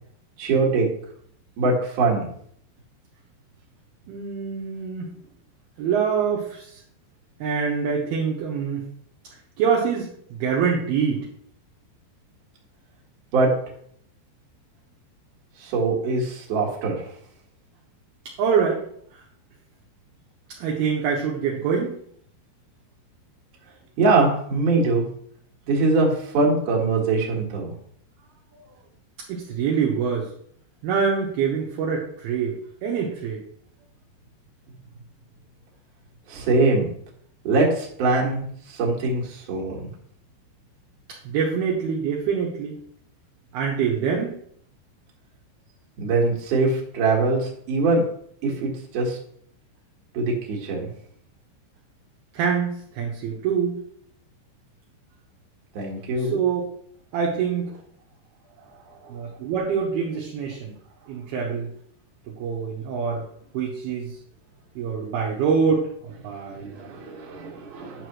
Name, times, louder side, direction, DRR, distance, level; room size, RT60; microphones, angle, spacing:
voice 1, 0.4-0.9 1.6-2.3 13.3-13.5 15.6-17.0 24.0-25.1 25.7-27.7 36.3-36.9 37.4-39.9 46.0-48.0 48.4-49.2 50.1-50.9 55.7-56.4 66.6-68.1, right 3 dB, 55° right, -2 dB, 2.7 m, -22 dB
voice 2, 4.1-5.1 5.8-6.8 7.4-8.8 9.6-11.3 18.4-18.8 19.1-19.2 20.6-22.0 29.3-30.3 30.8-33.4 41.2-42.8 43.5-44.3 52.3-53.8 56.2-56.6 57.1-57.8 59.1-60.7 61.1-61.7 62.3-63.3 63.5-64.2 64.8-66.8, right 6 dB, 75° right, -2 dB, 2.6 m, -25 dB
10.0 x 6.7 x 3.1 m, 0.65 s
omnidirectional pair, 5.2 m